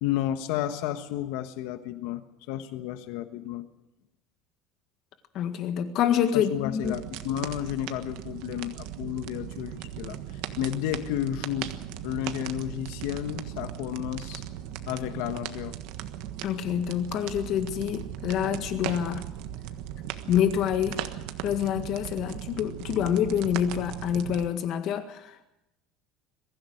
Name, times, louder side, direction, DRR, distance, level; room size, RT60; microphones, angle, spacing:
voice 1, 0.0-2.2 2.5-3.7 6.3-11.8 12.0-14.5 14.9-15.8, left 12 dB, 75° left, 9 dB, 1.3 m, -32 dB
voice 2, 5.3-7.0 16.4-19.2 20.3-21.0 21.4-25.4, left 9 dB, 50° left, 8 dB, 1.8 m, -27 dB
sound 1, 6.8-24.5, right 12 dB, 70° right, 1.4 m, -38 dB
22.5 x 15.5 x 7.9 m, 0.92 s
cardioid pair, 155°, 0 cm